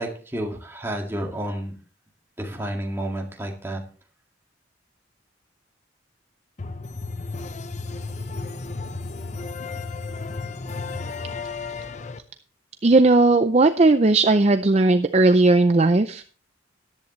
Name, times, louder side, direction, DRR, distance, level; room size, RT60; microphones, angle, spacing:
voice 1, 0.0-1.8 2.4-3.8, right 1 dB, 10° right, 1 dB, 2.0 m, -30 dB
sound 1, 6.6-12.2, left 3 dB, 35° left, 0.6 m, -33 dB
voice 2, 12.8-16.3, right 2 dB, 35° right, 9 dB, 0.5 m, -17 dB
14.0 x 10.5 x 3.2 m, 0.40 s
head